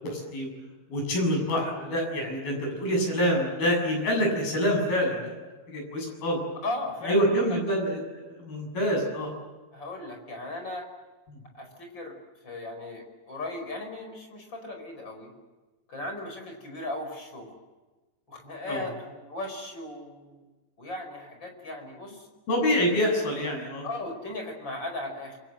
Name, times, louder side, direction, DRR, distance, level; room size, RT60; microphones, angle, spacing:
voice 1, 0.0-0.5 0.9-5.4 5.7-6.4 7.1-9.3 11.3-11.4 18.7-18.9 22.5-23.9, equal, 55° left, 1 dB, 9.2 m, -26 dB
voice 2, 6.6-7.6 9.7-10.9 11.5-12.1 12.4-15.3 15.9-17.6 18.3-20.4 20.8-22.3 23.8-25.4, left 2 dB, 25° left, 4 dB, 5.4 m, -37 dB
29.5 x 23.5 x 7.8 m, 1.2 s
omnidirectional pair, 5.0 m